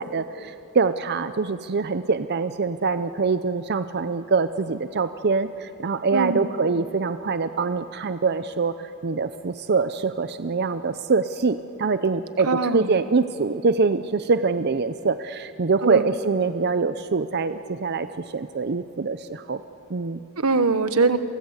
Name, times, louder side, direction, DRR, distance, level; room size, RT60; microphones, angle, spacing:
voice 1, 0.0-18.1 18.3-19.6 19.9-20.2, right 4 dB, 50° right, 11 dB, 0.6 m, -24 dB
voice 2, 6.1-6.5 12.5-12.9 15.8-16.0 20.4-21.2, right 4 dB, 85° right, 11 dB, 1.3 m, -21 dB
30.0 x 24.0 x 8.1 m, 3.0 s
head